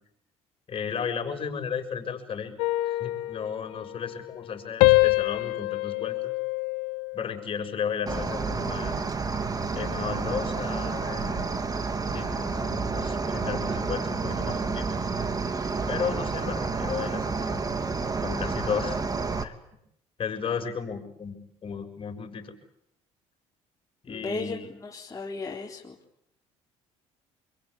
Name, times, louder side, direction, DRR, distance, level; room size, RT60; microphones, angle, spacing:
voice 1, 0.7-2.6 2.8-6.3 7.1-9.0 9.7-11.5 12.1-14.9 15.9-17.6 18.2-19.0 19.4-19.5 20.2-22.5 24.0-24.7, left 6 dB, 45° left, 5 dB, 6.5 m, -34 dB
sound 1, 2.6-4.5 4.8-7.4 7.8-8.2, left 21 dB, 85° left, 1.3 m, -26 dB
Cricket, 8.1-19.4, right 4 dB, 30° right, 2.9 m, -30 dB
voice 2, 24.1-25.9, left 3 dB, 25° left, -2 dB, 4.2 m, -35 dB
26.5 x 24.0 x 8.7 m, 0.77 s
supercardioid pair, 80°, 13 cm